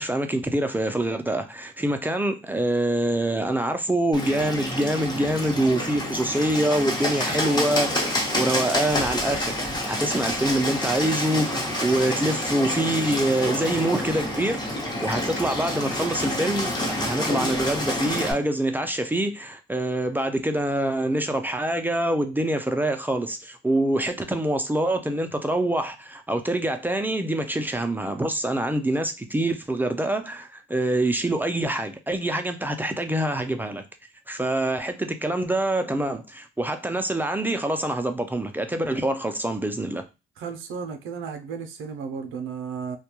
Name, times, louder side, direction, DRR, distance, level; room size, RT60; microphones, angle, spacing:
voice 1, 0.0-14.6 15.0-33.8 34.3-40.0, right 1 dB, 10° right, 0.3 m, -25 dB
Bird, 4.1-18.3, left 1 dB, 20° left, 0.8 m, -28 dB
voice 2, 40.4-43.0, right 6 dB, 80° right, 0.5 m, -34 dB
2.2 x 2.1 x 2.9 m
cardioid pair, 90°, 20 cm